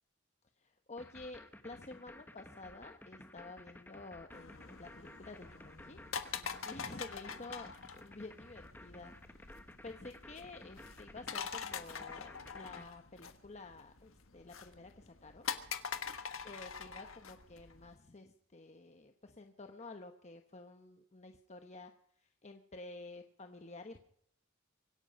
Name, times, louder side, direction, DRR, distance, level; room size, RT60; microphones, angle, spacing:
voice 1, 0.6-9.1 9.4-9.5 9.8-15.5 16.4-21.9 22.2-24.0, left 2 dB, 35° left, 6 dB, 1.0 m, -51 dB
sound 1, 1.0-12.8, left 1 dB, 10° left, 1.2 m, -54 dB
sound 2, 4.3-18.0, left 6 dB, 85° left, 1.4 m, -45 dB
24.5 x 11.0 x 5.4 m, 0.69 s
head